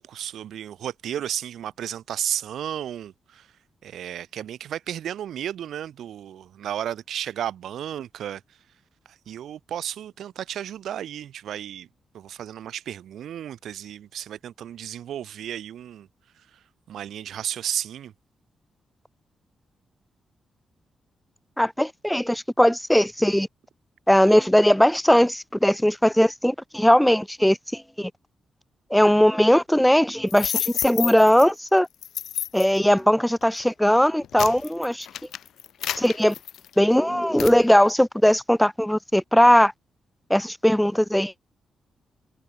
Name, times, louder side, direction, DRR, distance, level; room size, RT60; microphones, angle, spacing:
voice 1, 0.0-3.5 3.8-8.4 9.1-11.9 12.1-16.1 16.4-18.1, right 10 dB, 80° right, 0.3 m, -33 dB
voice 2, 21.6-23.5 24.1-28.1 28.9-31.9 32.5-35.1 36.0-36.4 36.8-39.7 40.3-41.3, equal, 5° left, 0.3 m, -19 dB
sound 1, 30.3-31.5 32.0-32.8 33.4-33.6 34.1-36.9 37.4-37.6, left 10 dB, 80° left, 0.4 m, -30 dB
cardioid pair, 65°, 0 cm